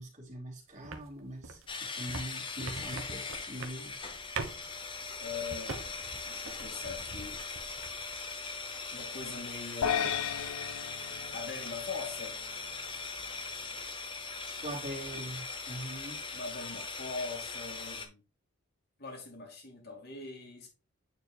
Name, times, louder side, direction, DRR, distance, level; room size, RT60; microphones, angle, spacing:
voice 1, 0.0-4.0 14.5-16.2, right 1 dB, 35° right, 3.0 m, -42 dB
sound 1, 0.8-8.4 8.7-9.6 9.9-10.5, right 3 dB, 65° right, 1.2 m, -44 dB
sound 2, 1.7-18.1, left 4 dB, 20° left, 0.9 m, -40 dB
voice 2, 5.2-5.9 6.3-7.4 8.9-10.2 11.3-12.4 16.3-18.2 19.0-20.7, left 4 dB, 45° left, 2.4 m, -41 dB
sound 3, 9.8-12.3, left 8 dB, 85° left, 0.6 m, -34 dB
9.5 x 4.6 x 2.4 m
head